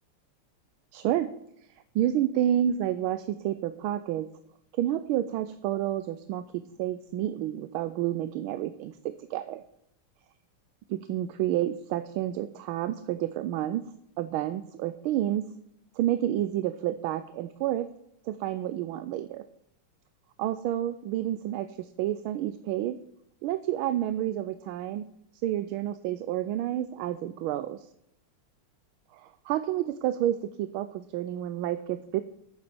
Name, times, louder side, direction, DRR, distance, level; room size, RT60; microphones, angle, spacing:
voice 1, 0.9-1.4 1.9-4.3 4.7-6.4 6.8-9.6 10.9-13.8 14.2-15.4 15.9-17.9 18.3-19.4 20.4-23.0 23.4-25.0 25.4-27.9 29.1-32.2, right 12 dB, 80° right, 11 dB, 1.4 m, -29 dB
9.5 x 7.2 x 6.7 m, 0.75 s
omnidirectional pair, 2.4 m